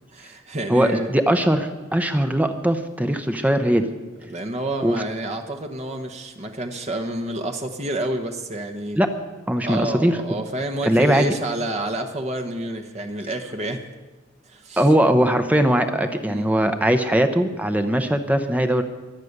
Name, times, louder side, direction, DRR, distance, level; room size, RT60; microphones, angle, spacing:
voice 1, 0.1-1.1 4.3-9.0 9.6-13.8 14.5-14.8 16.2-16.5, right 1 dB, 35° right, 5 dB, 1.0 m, -29 dB
voice 2, 0.7-3.9 4.8-5.0 8.9-9.1 9.5-10.2 10.8-11.3 14.8-18.8, right 1 dB, 10° right, 7 dB, 0.8 m, -20 dB
23.0 x 8.4 x 6.6 m, 1.2 s
head